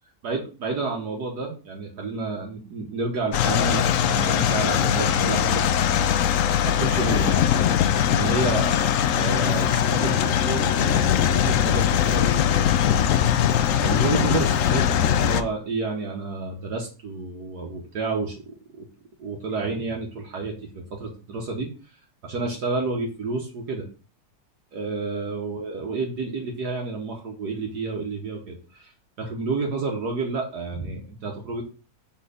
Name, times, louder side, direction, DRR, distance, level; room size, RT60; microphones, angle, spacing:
voice 1, 0.2-6.1 6.6-7.4 8.1-8.8 9.1-13.0 13.8-14.9 15.1-18.9 19.2-21.7 22.2-23.9 24.7-28.9 29.2-31.6, right 3 dB, 65° right, 0 dB, 1.6 m, -30 dB
sound 1, 3.3-15.4, left 9 dB, 70° left, 0.7 m, -21 dB
6.4 x 4.5 x 5.0 m, 0.35 s
omnidirectional pair, 1.9 m